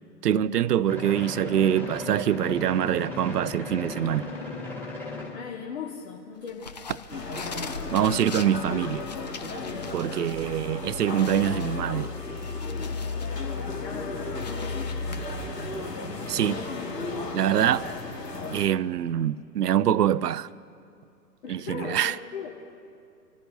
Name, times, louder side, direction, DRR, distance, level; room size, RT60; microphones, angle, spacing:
voice 1, 0.2-4.3 7.9-9.1 9.9-12.1 16.3-16.6 17.3-17.9 18.5-20.5 21.5-22.1, right 10 dB, 80° right, 0.6 m, -24 dB
sound 1, 0.9-5.4, left 3 dB, 5° left, 1.8 m, -36 dB
voice 2, 5.3-6.7 10.1-10.6 13.5-14.8 21.4-22.5, left 6 dB, 50° left, 1.6 m, -38 dB
sound 2, 6.5-10.4 10.8-10.9 11.2-13.3 13.8-15.2, left 5 dB, 30° left, 0.4 m, -41 dB
sound 3, 7.1-18.6, left 3 dB, 90° left, 2.0 m, -33 dB
26.5 x 15.0 x 2.6 m
hypercardioid pair, 130°, 47 cm